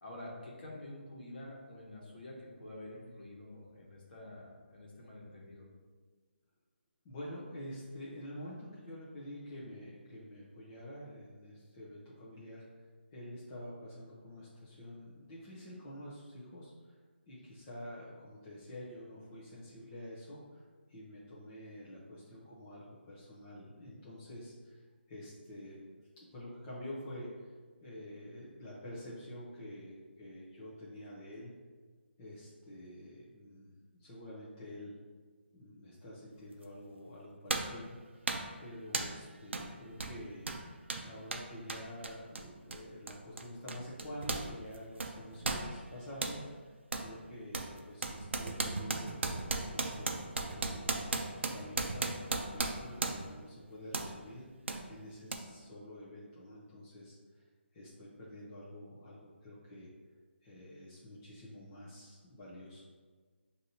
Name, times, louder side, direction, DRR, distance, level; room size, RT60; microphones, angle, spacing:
voice 1, 0.0-5.7, left 1 dB, 50° left, -3 dB, 1.2 m, -48 dB
voice 2, 7.0-12.8 13.1-17.0 17.3-20.6 20.9-24.8 25.1-25.8 26.3-27.5 27.8-31.5 32.2-34.9 35.5-38.3 38.6-40.5 41.0-46.7 47.0-54.5 54.9-59.9 60.4-62.8, equal, 15° left, -9 dB, 0.6 m, -48 dB
sound 1, 36.6-36.8 37.5-37.8 38.3-38.5 38.9-39.2 39.5-39.7 40.0-44.5 44.7-46.4 46.9-47.1 47.5-53.4 53.9-54.1 54.7-54.8 55.3-55.4, right 3 dB, 70° right, 0.5 m, -36 dB
6.1 x 2.7 x 2.7 m, 1.4 s
hypercardioid pair, 170°, 7 cm